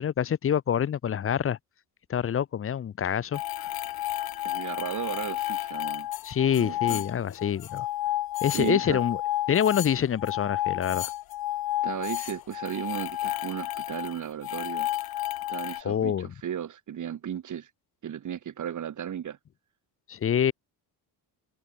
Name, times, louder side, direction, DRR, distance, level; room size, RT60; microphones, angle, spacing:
voice 1, 0.0-1.6 2.1-3.7 6.2-7.9 8.4-9.2 9.5-11.1 15.8-16.3 20.1-20.5, left 9 dB, 35° left, 0.8 m, -26 dB
sound 1, 3.3-15.8, left 14 dB, 65° left, 1.4 m, -31 dB
voice 2, 4.4-6.1 6.6-7.0 8.4-9.0 11.8-14.9 15.5-17.7 18.0-19.4, right 9 dB, 50° right, 4.2 m, -35 dB
cardioid pair, 140°, 38 cm